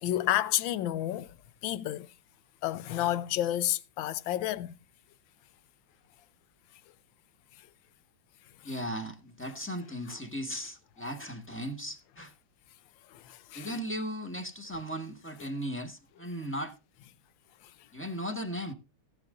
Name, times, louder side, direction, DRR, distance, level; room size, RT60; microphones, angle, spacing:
voice 1, 0.0-1.4 1.6-2.1 2.6-4.7 8.6-8.7 13.1-13.7, left 13 dB, 70° left, 1.4 m, -30 dB
voice 2, 8.6-12.3 13.5-16.7 17.9-18.7, equal, 5° left, 1.1 m, -37 dB
18.5 x 8.6 x 2.6 m
omnidirectional pair, 2.4 m